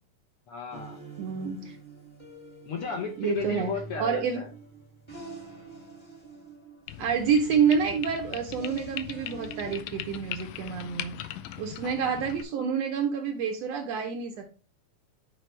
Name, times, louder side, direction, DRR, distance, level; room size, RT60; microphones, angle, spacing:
voice 1, 0.5-1.0 2.7-4.5, left 5 dB, 60° left, 2 dB, 1.6 m, -34 dB
sound 1, 0.7-9.7, right 4 dB, 15° left, 1.2 m, -46 dB
voice 2, 1.2-1.8 3.2-3.7 4.0-4.4 7.0-11.2 11.6-14.6, right 6 dB, 70° right, 4 dB, 1.7 m, -28 dB
sound 2, 6.9-12.4, left 12 dB, 75° left, 1.6 m, -40 dB
9.1 x 4.7 x 3.3 m, 0.36 s
omnidirectional pair, 3.4 m